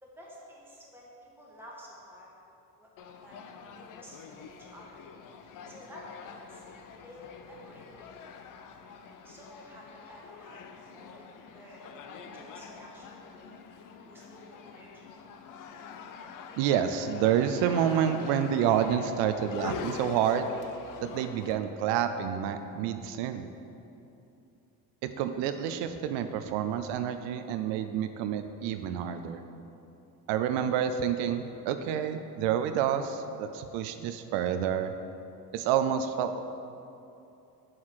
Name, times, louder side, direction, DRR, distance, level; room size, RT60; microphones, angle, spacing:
voice 1, 0.0-2.3 2.8-2.9 3.2-3.4 3.7-5.0 5.7-6.6 7.0-8.3 9.2-11.8 12.1-13.8 14.0-15.1, equal, 5° right, -5 dB, 1.5 m, -51 dB
sound 1, 3.0-21.6, left 6 dB, 50° left, 0.5 m, -45 dB
voice 2, 16.6-20.5 21.0-23.5 25.0-29.4 30.3-34.9 35.5-36.4, right 9 dB, 85° right, 9 dB, 0.5 m, -28 dB
6.3 x 5.7 x 4.7 m, 2.8 s
cardioid pair, 125°, 41 cm